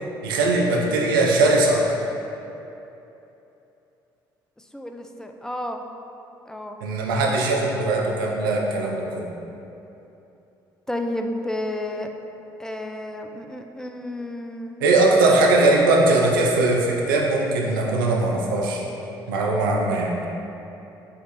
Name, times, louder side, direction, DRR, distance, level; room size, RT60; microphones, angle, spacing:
voice 1, 0.2-1.9 6.8-9.3 14.8-18.8 19.3-20.2, right 2 dB, 80° right, -1 dB, 0.4 m, -20 dB
voice 2, 4.6-5.8 6.5-6.8 10.9-12.1 12.6-14.8, left 1 dB, 5° left, 4 dB, 0.3 m, -31 dB
4.9 x 3.0 x 3.0 m, 2.9 s
hypercardioid pair, 50°, 11 cm